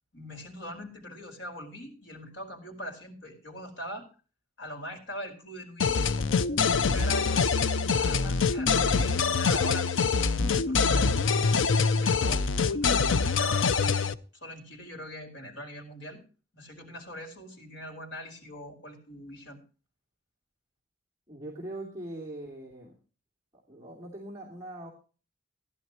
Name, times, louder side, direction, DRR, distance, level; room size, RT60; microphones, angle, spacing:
voice 1, 0.1-4.1 4.6-9.9 10.2-14.1 14.4-16.2 16.5-19.6, equal, 65° left, 2 dB, 4.9 m, -42 dB
sound 1, 5.8-14.1, left 5 dB, 85° left, 0.6 m, -25 dB
voice 2, 21.3-22.9 23.5-24.9, right 1 dB, 20° right, -4 dB, 2.7 m, -41 dB
17.0 x 11.0 x 3.0 m, 0.36 s
head